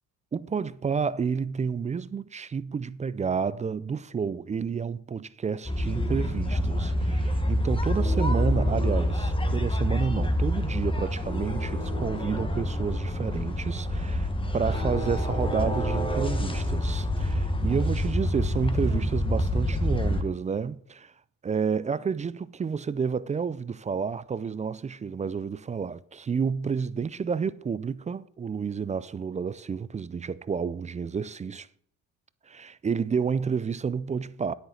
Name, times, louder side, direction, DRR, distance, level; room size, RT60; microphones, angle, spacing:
voice 1, 0.3-21.1 21.4-31.7 32.5-34.5, right 6 dB, 20° right, 0.3 m, -30 dB
sound 1, 5.7-20.2, equal, 15° left, 1.2 m, -27 dB
9.6 x 8.8 x 3.9 m
supercardioid pair, 75°, 37 cm